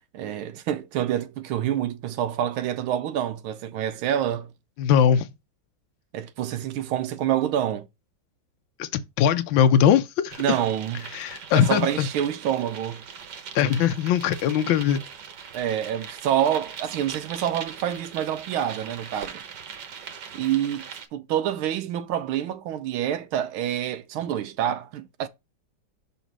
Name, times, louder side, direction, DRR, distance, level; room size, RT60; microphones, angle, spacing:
voice 1, 0.1-4.5 6.1-7.9 10.4-11.1 11.5-13.0 15.5-19.4 20.3-20.8 21.1-25.3, right 10 dB, 85° right, 1.6 m, -27 dB
voice 2, 4.8-5.3 8.8-8.9 9.2-10.4 11.1-12.1 13.5-15.0, left 9 dB, 75° left, 1.5 m, -20 dB
sound 1, 10.3-21.1, right 7 dB, 60° right, 1.5 m, -41 dB
5.8 x 4.1 x 6.0 m
omnidirectional pair, 2.2 m